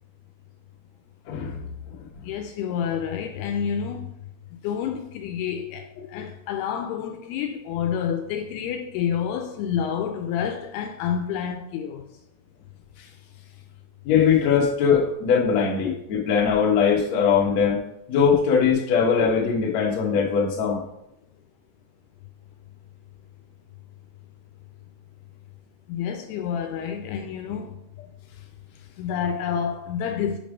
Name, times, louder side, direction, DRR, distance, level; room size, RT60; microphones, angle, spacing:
voice 1, 1.3-1.6 14.1-17.8 18.1-20.8, left 6 dB, 65° left, 1.8 m, -21 dB
voice 2, 2.2-4.1 4.6-12.1 25.9-27.8 29.0-30.4, left 8 dB, 80° left, 2.5 m, -28 dB
8.6 x 3.3 x 5.1 m
omnidirectional pair, 4.8 m